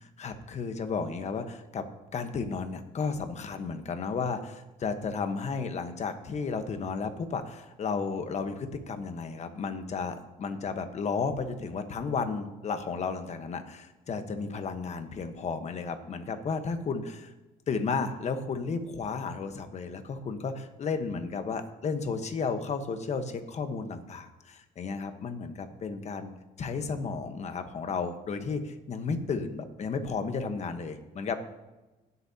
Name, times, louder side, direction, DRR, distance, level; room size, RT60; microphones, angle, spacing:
voice 1, 0.2-1.8 2.1-17.3 17.7-26.3 26.6-31.4, left 5 dB, 40° left, 8 dB, 1.2 m, -33 dB
17.5 x 8.3 x 2.9 m, 1.1 s
cardioid pair, 110°, 17 cm